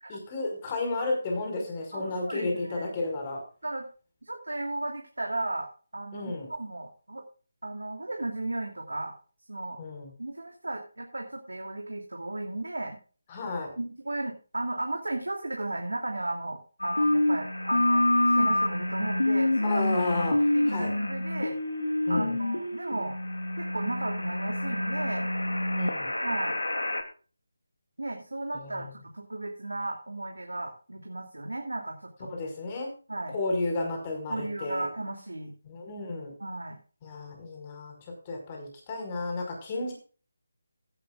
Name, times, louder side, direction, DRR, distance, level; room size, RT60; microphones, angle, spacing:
voice 1, 0.1-3.4 6.1-6.5 9.8-10.1 13.3-13.7 19.6-20.4 20.7-20.9 22.1-22.4 25.7-26.1 28.5-28.9 32.2-32.9 33.3-34.9 35.7-36.3 37.0-37.9 38.3-39.9, left 2 dB, 25° left, 2 dB, 5.2 m, -32 dB
voice 2, 1.9-2.9 3.6-3.9 4.2-7.2 7.6-9.1 9.5-9.8 10.2-13.0 13.8-20.1 20.5-21.6 22.1-23.2 23.6-25.3 26.2-26.6 28.0-32.3 33.1-33.3 34.3-35.5 36.4-36.8, right 2 dB, 85° right, 2 dB, 2.8 m, -35 dB
sound 1, 16.8-27.0, left 1 dB, 85° left, 2.8 m, -27 dB
16.5 x 12.0 x 2.5 m, 0.37 s
figure-of-eight pair, 160°, 0 cm